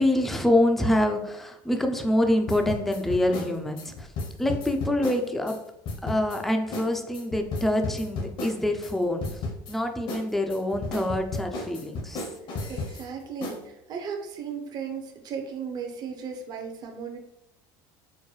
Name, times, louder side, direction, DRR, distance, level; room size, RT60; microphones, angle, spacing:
voice 1, 0.0-4.1 4.4-5.6 6.0-9.4 9.7-12.3, left 1 dB, ahead, 4 dB, 0.4 m, -25 dB
sound 1, 2.5-5.6 5.8-6.4 6.7-6.9 7.1-8.9 9.2-9.7 10.1-13.0 13.4-13.6, left 3 dB, 55° left, 0.8 m, -33 dB
voice 2, 12.7-17.2, right 6 dB, 40° right, 3 dB, 0.6 m, -36 dB
4.5 x 2.1 x 3.1 m, 0.81 s
supercardioid pair, 115°, 10 cm